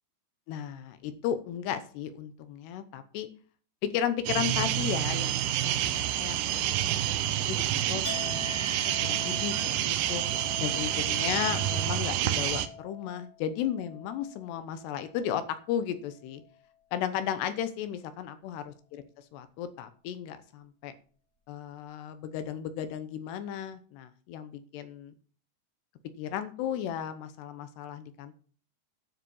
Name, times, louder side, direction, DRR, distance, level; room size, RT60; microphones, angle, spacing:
voice 1, 0.5-3.3 3.8-7.1 7.4-8.7 9.0-10.2 10.6-16.4 16.9-19.0 19.3-20.9 21.5-25.1 26.2-28.3, left 9 dB, 75° left, 11 dB, 2.9 m, -35 dB
sound 1, 4.3-12.7, right 12 dB, 75° right, 2.4 m, -28 dB
Chink clink, 8.0-15.7 16.1-16.7, left 4 dB, 35° left, 1.8 m, -44 dB
9.9 x 7.4 x 5.5 m, 0.42 s
omnidirectional pair, 5.1 m